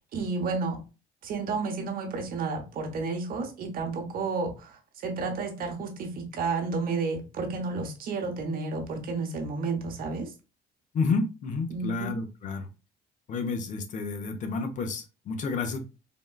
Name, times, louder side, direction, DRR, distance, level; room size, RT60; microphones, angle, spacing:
voice 1, 0.1-0.8 1.2-10.3 11.7-12.2, right 4 dB, 60° right, 0.9 m, -31 dB
voice 2, 10.9-12.7 13.3-15.9, left 4 dB, 50° left, 0.5 m, -30 dB
3.5 x 2.2 x 2.2 m
cardioid pair, 110°, 17 cm